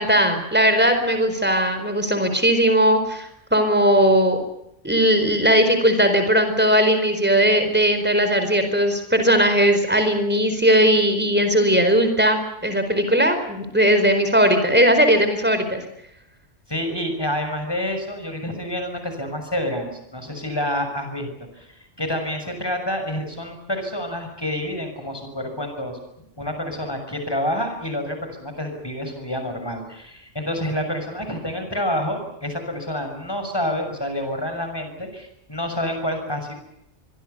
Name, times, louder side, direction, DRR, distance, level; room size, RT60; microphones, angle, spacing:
voice 1, 0.0-4.4 4.8-15.8, equal, 10° right, 8 dB, 4.5 m, -18 dB
voice 2, 16.7-26.0 26.4-36.5, left 1 dB, 20° left, 6 dB, 6.5 m, -28 dB
25.5 x 23.0 x 6.9 m, 0.79 s
omnidirectional pair, 1.2 m